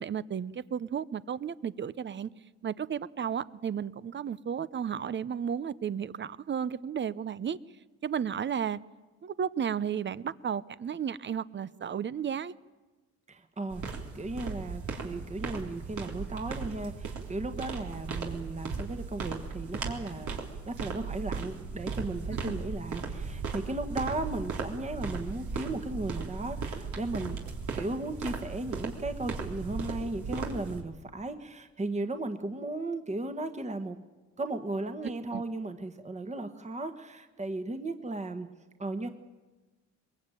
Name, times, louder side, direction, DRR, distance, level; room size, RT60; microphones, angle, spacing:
voice 1, 0.0-2.3 2.6-7.6 8.0-8.8 9.2-12.5 22.3-22.5 35.3-35.4, right 8 dB, 40° right, 18 dB, 0.7 m, -33 dB
voice 2, 13.3-20.4 20.7-27.4 27.7-34.0 34.4-38.5 38.8-39.1, right 2 dB, 25° right, 7 dB, 1.5 m, -36 dB
sound 1, 13.7-30.8, right 5 dB, 75° right, 3.7 m, -37 dB
22.5 x 21.5 x 9.0 m, 1.2 s
cardioid pair, 90°, 30 cm